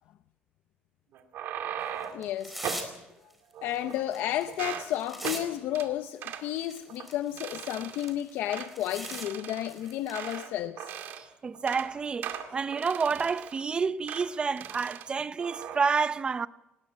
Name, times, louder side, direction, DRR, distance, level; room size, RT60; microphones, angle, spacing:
sound 1, 1.1-2.3 2.6-2.9 3.5-4.2 4.5-4.9 5.2-5.4 5.7-5.9 6.2-6.4 6.9-7.1 7.4-8.1 8.5-8.7 9.0-10.5 10.8-11.3 11.5-11.9 12.2-13.6 14.1-14.3 14.6-15.1 15.4-15.8, right 9 dB, 75° right, 2.2 m, -38 dB
sound 2, 1.8-3.0 3.3-5.4 5.8-5.9 6.5-9.3 9.5-10.4, right 1 dB, 5° right, 4.3 m, -42 dB
voice 1, 2.1-2.6 3.6-10.9, left 12 dB, 85° left, 0.7 m, -32 dB
voice 2, 11.4-16.5, right 5 dB, 25° right, 0.6 m, -29 dB
19.5 x 17.0 x 8.7 m
cardioid pair, 135°, 4 cm